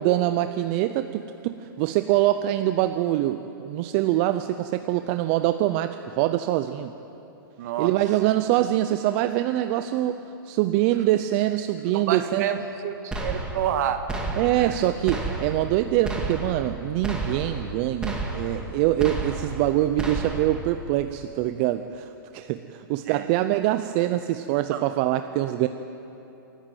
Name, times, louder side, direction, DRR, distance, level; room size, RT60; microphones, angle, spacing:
voice 1, 0.0-6.9 7.8-10.2 10.4-12.5 14.4-25.7, right 14 dB, 30° right, 10 dB, 0.5 m, -24 dB
voice 2, 7.6-7.9 11.9-14.0 14.6-14.8 23.1-23.3 24.7-24.9, right 9 dB, 50° right, 8 dB, 1.6 m, -29 dB
sound 1, 13.1-13.8 14.1-14.8 15.1-15.8 16.0-16.7 17.0-17.7 18.0-18.7 19.0-19.7 20.0-20.7, right 2 dB, 5° right, 1.8 m, -31 dB
27.5 x 11.5 x 9.1 m, 3.0 s
hypercardioid pair, 160°, 12 cm